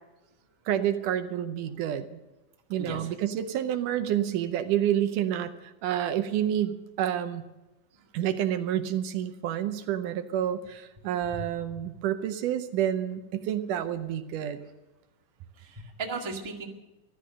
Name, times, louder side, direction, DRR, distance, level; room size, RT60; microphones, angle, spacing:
voice 1, 0.7-2.1 2.7-5.5 5.8-7.4 8.1-14.6, right 10 dB, 75° right, 9 dB, 2.2 m, -29 dB
voice 2, 2.8-3.1 7.9-8.1 11.4-11.5 15.6-16.7, right 3 dB, 15° right, 1 dB, 1.0 m, -36 dB
15.0 x 12.5 x 6.6 m, 1.1 s
omnidirectional pair, 3.8 m